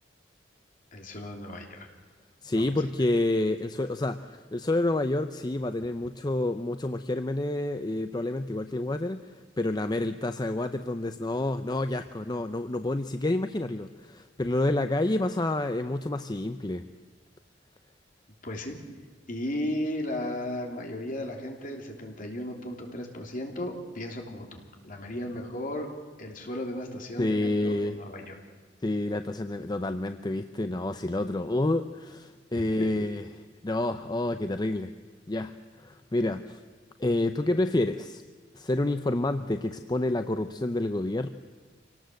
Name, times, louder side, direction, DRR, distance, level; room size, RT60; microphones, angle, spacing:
voice 1, 0.9-1.9 2.5-2.7 18.4-18.8 19.3-25.9 26.2-28.4 32.5-32.9, left 1 dB, 45° left, 2 dB, 3.3 m, -35 dB
voice 2, 2.4-16.8 27.2-28.0 28.8-33.2 33.6-34.9 35.3-36.6 37.0-38.2 38.5-41.3, left 2 dB, 25° left, 9 dB, 0.6 m, -29 dB
26.0 x 18.0 x 7.9 m, 1.5 s
head